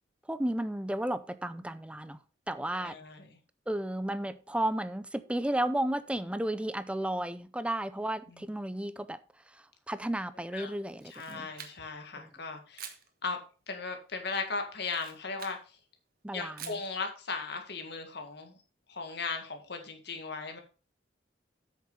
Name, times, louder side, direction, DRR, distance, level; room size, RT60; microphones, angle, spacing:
voice 1, 0.3-2.2 2.5-3.0 3.7-9.2 9.5-11.5 12.1-12.3 16.2-16.8, right 1 dB, 5° right, 0.5 m, -33 dB
voice 2, 2.7-3.3 8.3-8.4 10.5-10.7 11.1-12.9 13.2-13.4 13.7-15.8 16.3-18.6 18.9-20.6, left 4 dB, 65° left, 1.9 m, -37 dB
Camera, 10.9-12.1 12.7-13.1 14.8-15.6 16.6-16.9, right 8 dB, 55° right, 1.4 m, -46 dB
8.1 x 6.6 x 5.3 m
head